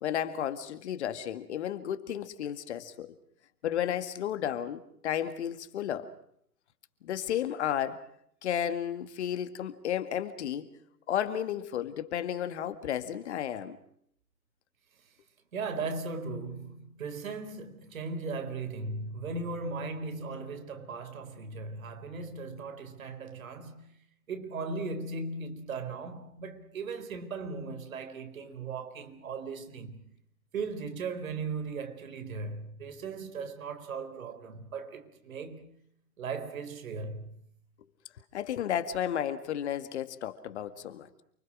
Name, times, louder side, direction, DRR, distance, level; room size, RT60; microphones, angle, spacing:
voice 1, 0.0-3.1 3.6-6.1 7.0-8.0 8.4-10.7 11.1-13.8 38.3-41.2, left 10 dB, 45° left, 2.0 m, -33 dB
voice 2, 15.5-23.9 24.3-30.0 30.5-35.8 36.2-37.5, right 4 dB, 55° right, 4.2 m, -38 dB
29.0 x 25.0 x 6.3 m
figure-of-eight pair, 125°, 48 cm